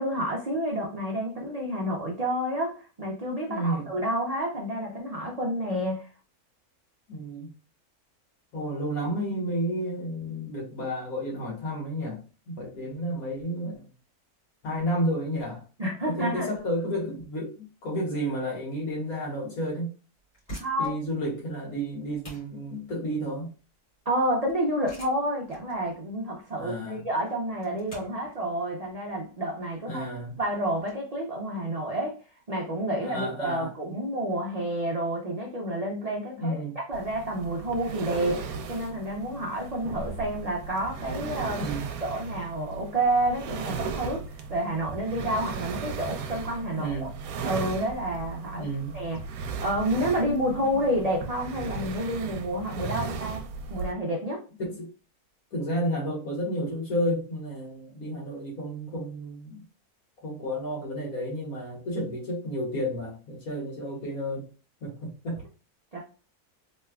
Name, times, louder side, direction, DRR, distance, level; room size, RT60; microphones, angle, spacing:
voice 1, 0.0-6.1 15.8-16.5 20.6-21.0 24.1-30.0 30.4-32.2 32.5-36.6 36.9-41.7 42.0-44.2 44.5-47.1 47.4-48.7 48.9-49.2 49.6-54.4 65.9-66.0, right 1 dB, 55° right, -2 dB, 0.4 m, -29 dB
voice 2, 3.5-3.9 7.1-7.5 8.5-12.2 12.5-13.9 14.6-15.6 16.1-19.9 20.8-23.5 26.6-27.1 29.8-30.4 33.0-33.7 36.4-36.8 41.6-41.9 46.7-47.2 48.5-49.0 50.6-50.9 54.7-54.9 55.5-59.6 60.2-64.5 64.8-65.4, equal, 70° left, -3 dB, 1.9 m, -31 dB
sound 1, 20.2-30.9, equal, 45° left, 1.9 m, -48 dB
sound 2, 36.9-53.9, right 5 dB, 75° right, 1.0 m, -36 dB
3.3 x 3.1 x 2.3 m, 0.35 s
omnidirectional pair, 1.6 m